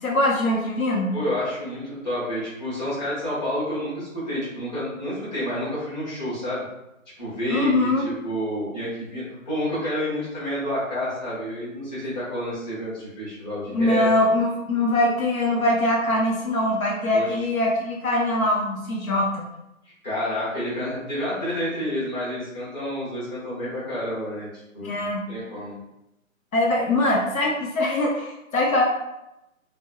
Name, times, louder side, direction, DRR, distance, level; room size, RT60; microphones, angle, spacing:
voice 1, 0.0-1.2 7.5-8.1 13.7-19.4 24.8-25.3 26.5-28.8, left 1 dB, 85° left, -2 dB, 0.8 m, -22 dB
voice 2, 1.1-6.6 7.2-14.1 17.1-17.3 20.0-24.5 24.7-25.0 25.3-25.7, left 1 dB, 30° left, -10 dB, 1.2 m, -29 dB
3.2 x 2.1 x 2.2 m, 0.91 s
hypercardioid pair, 175°, 41 cm